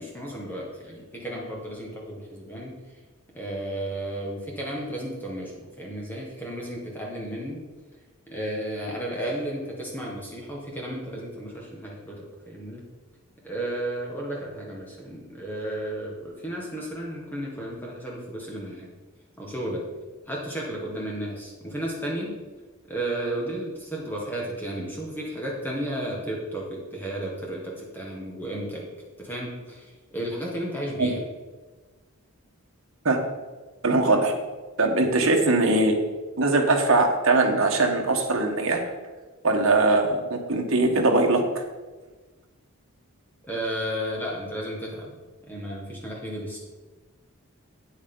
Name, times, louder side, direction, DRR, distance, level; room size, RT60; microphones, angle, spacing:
voice 1, 0.0-2.8 3.3-7.6 8.3-12.8 13.4-18.9 19.4-19.8 20.3-22.3 22.9-28.8 29.2-31.2 43.4-45.2 45.5-46.6, right 1 dB, 10° left, -3 dB, 1.5 m, -33 dB
voice 2, 33.8-34.3 34.8-36.0 36.4-38.9 39.4-41.6, right 2 dB, 65° right, 3 dB, 1.3 m, -21 dB
9.0 x 8.4 x 3.9 m, 1.3 s
head